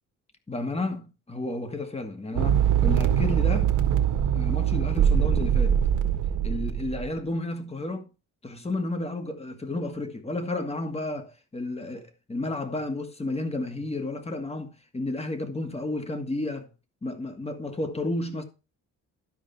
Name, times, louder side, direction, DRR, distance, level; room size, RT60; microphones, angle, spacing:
voice 1, 0.5-3.8 4.3-5.8 6.4-8.1 8.4-16.7 17.0-18.4, left 2 dB, 20° left, 2.2 m, -32 dB
sound 1, 2.4-7.1, right 9 dB, 75° right, 1.6 m, -23 dB
12.0 x 5.1 x 5.8 m
cardioid pair, 90°, 30 cm